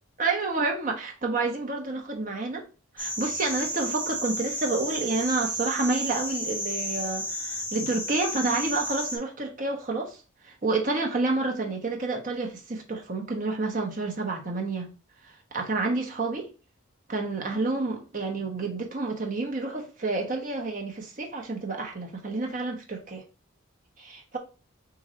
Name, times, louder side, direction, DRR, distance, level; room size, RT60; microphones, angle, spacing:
voice 1, 0.2-2.6 2.9-14.9 15.2-16.5 17.1-23.2 24.0-24.4, right 3 dB, 40° right, 1.0 m, -29 dB
sound 1, 3.0-9.2, equal, 5° left, 0.9 m, -32 dB
3.8 x 2.6 x 4.2 m
head